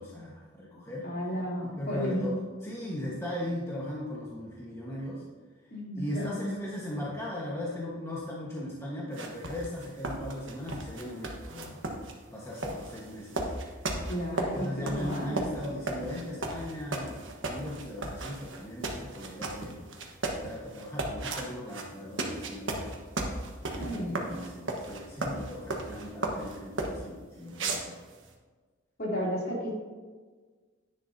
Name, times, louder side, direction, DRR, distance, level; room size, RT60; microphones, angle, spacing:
voice 1, 0.0-1.1 1.6-5.2 5.9-11.9 12.3-13.5 14.4-19.8 20.3-22.9 23.7-28.1, left 1 dB, 15° left, -5 dB, 1.4 m, -38 dB
voice 2, 1.0-2.3 5.7-6.3 14.1-15.5 23.7-24.2 29.0-29.7, equal, 50° left, -5 dB, 3.2 m, -33 dB
sound 1, 9.1-27.1 27.5-28.3, right 2 dB, 70° right, 1.4 m, -35 dB
10.5 x 10.5 x 2.8 m, 1.4 s
head